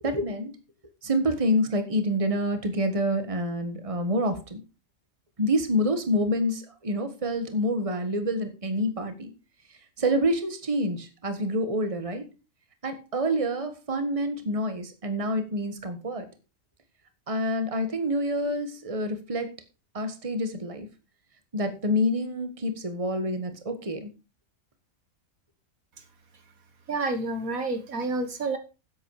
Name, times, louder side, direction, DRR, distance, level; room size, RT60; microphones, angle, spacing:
voice 1, 0.0-0.5 1.0-4.6 5.4-9.3 10.0-12.2 12.8-16.3 17.3-19.5 19.9-20.9 21.5-24.1, equal, 25° right, 8 dB, 1.6 m, -27 dB
voice 2, 26.9-28.6, right 3 dB, 75° right, 8 dB, 1.9 m, -29 dB
10.5 x 8.1 x 4.9 m, 0.31 s
omnidirectional pair, 1.5 m